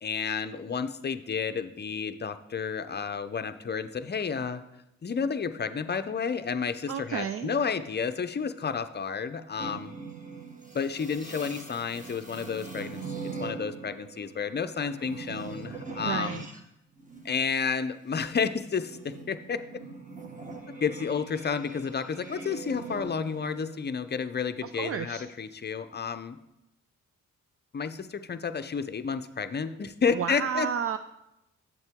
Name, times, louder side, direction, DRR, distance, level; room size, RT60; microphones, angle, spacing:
voice 1, 0.0-4.6 5.0-10.0 10.7-13.0 13.4-16.4 17.2-19.6 20.8-26.4 27.7-30.7, left 6 dB, 30° left, 10 dB, 0.6 m, -31 dB
voice 2, 6.9-7.5 16.0-16.5 24.6-25.3 30.1-31.0, right 8 dB, 45° right, 10 dB, 0.4 m, -31 dB
sound 1, 9.6-16.6 16.9-23.8, right 4 dB, 25° right, 1.5 m, -42 dB
8.0 x 7.6 x 3.6 m, 0.89 s
supercardioid pair, 55°, 33 cm